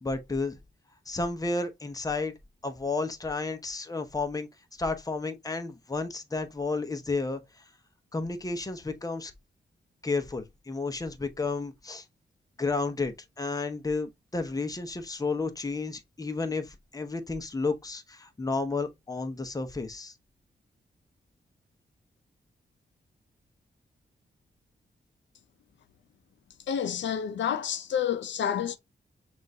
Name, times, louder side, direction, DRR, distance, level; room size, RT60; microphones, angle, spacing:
voice 1, 0.0-0.6 1.1-2.3 2.6-4.5 4.8-7.4 8.1-9.3 10.0-12.0 12.6-20.1, left 3 dB, 20° left, 0.8 m, -32 dB
voice 2, 26.7-28.8, left 8 dB, 80° left, 0.5 m, -29 dB
5.9 x 2.5 x 2.7 m
wide cardioid pair, 100°, 18 cm